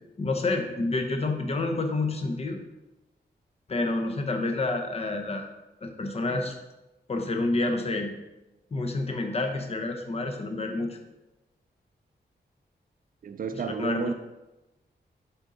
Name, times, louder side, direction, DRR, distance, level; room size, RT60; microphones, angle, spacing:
voice 1, 0.2-2.6 3.7-5.5 5.8-6.5 7.1-8.1 8.7-11.0 13.5-14.1, left 2 dB, 35° left, 0.7 m, -28 dB
voice 2, 13.2-14.1, right 6 dB, 55° right, 0.5 m, -32 dB
7.0 x 3.8 x 3.9 m
wide cardioid pair, 155°, 18 cm